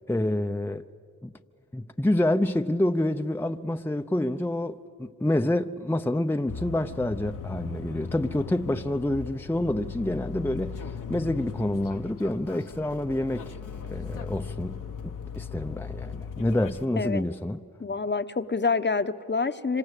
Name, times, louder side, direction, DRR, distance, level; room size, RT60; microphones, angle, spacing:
voice 1, 0.1-0.8 1.2-1.3 1.7-13.5 13.9-17.6, left 1 dB, 5° left, 0.7 m, -28 dB
sound 1, 6.5-16.9, left 6 dB, 80° left, 1.3 m, -38 dB
voice 2, 17.8-19.8, left 4 dB, 35° left, 1.0 m, -27 dB
26.5 x 25.5 x 8.3 m
cardioid pair, 45°, 31 cm